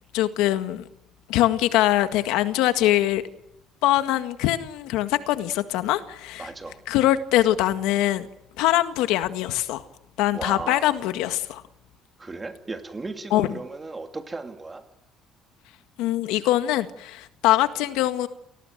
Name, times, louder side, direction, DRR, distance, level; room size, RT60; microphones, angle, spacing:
voice 1, 0.1-0.8 1.3-3.2 3.8-6.5 6.9-8.3 8.6-9.8 10.2-11.6 13.3-13.5 16.0-18.3, left 14 dB, 90° left, 1.8 m, -23 dB
voice 2, 6.4-6.8 10.3-10.9 12.2-14.8, right 3 dB, 15° right, 2.6 m, -35 dB
29.5 x 19.0 x 9.2 m
cardioid pair, 155°, 0 cm